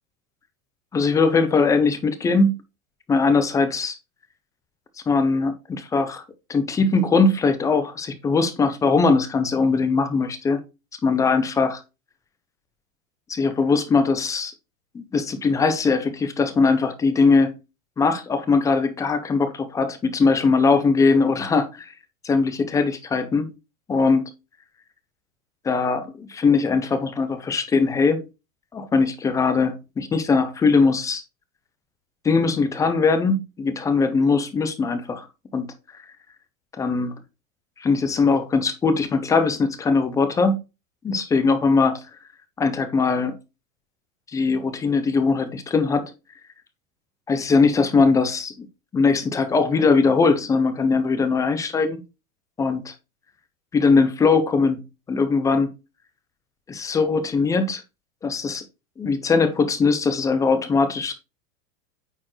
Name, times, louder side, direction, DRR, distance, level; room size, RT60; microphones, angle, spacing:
voice 1, 0.9-2.6 3.1-4.0 5.1-6.2 6.5-10.6 11.0-11.7 13.3-14.5 14.9-17.5 18.0-21.9 22.2-23.5 23.9-24.2 25.6-28.2 28.7-31.2 32.2-35.3 35.5-35.7 36.8-37.2 37.8-40.6 41.0-42.0 42.6-43.4 44.3-46.1 47.3-48.7 48.9-52.0 52.6-52.9 53.7-54.8 55.1-55.7 56.7-57.8 58.2-58.6 59.0-61.1, left 4 dB, 10° left, 0.3 m, -20 dB
8.8 x 4.2 x 3.0 m
supercardioid pair, 135°, 42 cm